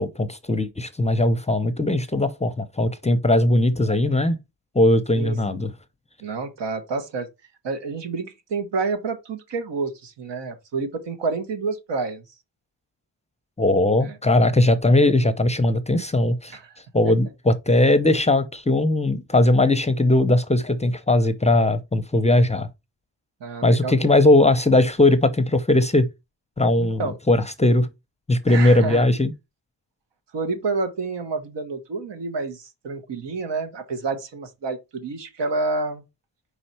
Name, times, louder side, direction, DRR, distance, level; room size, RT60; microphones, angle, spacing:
voice 1, 0.0-4.4 4.7-5.7 13.6-16.5 16.9-22.7 23.6-26.1 26.6-27.9 28.3-29.3, left 2 dB, 15° left, 0.6 m, -19 dB
voice 2, 5.2-5.7 6.2-7.3 7.6-12.2 14.0-14.2 16.5-16.7 23.4-23.9 26.8-27.2 28.5-29.1 30.3-36.0, right 4 dB, 75° right, 1.5 m, -29 dB
5.0 x 4.4 x 4.3 m
cardioid pair, 100°, 43 cm